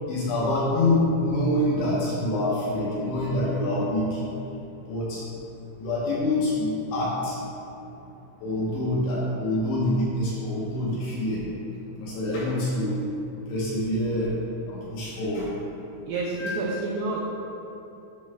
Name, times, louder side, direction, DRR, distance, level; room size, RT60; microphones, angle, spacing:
voice 1, 0.1-4.2 4.9-5.2 5.8-7.4 8.4-11.4 12.0-13.0 13.5-14.3 14.7-15.5 16.4-16.5, left 1 dB, 70° left, -7 dB, 2.8 m, -26 dB
voice 2, 16.1-17.2, right 3 dB, 90° right, -3 dB, 2.4 m, -29 dB
11.0 x 5.2 x 2.3 m, 2.9 s
omnidirectional pair, 5.7 m